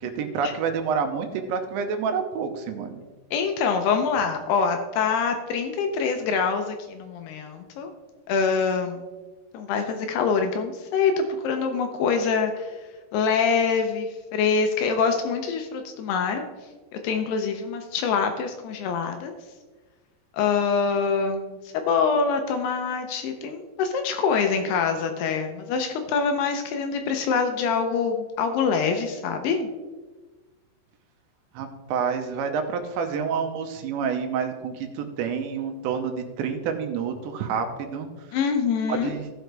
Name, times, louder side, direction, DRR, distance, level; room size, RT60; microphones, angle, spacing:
voice 1, 0.0-3.0 31.5-38.4 38.9-39.3, right 6 dB, 90° right, 5 dB, 3.1 m, -28 dB
voice 2, 3.3-7.9 8.3-9.1 9.5-12.8 13.1-16.4 16.9-19.3 20.3-29.7 38.3-39.1, left 5 dB, 80° left, 5 dB, 2.5 m, -25 dB
15.0 x 6.3 x 3.3 m, 1.3 s
omnidirectional pair, 5.1 m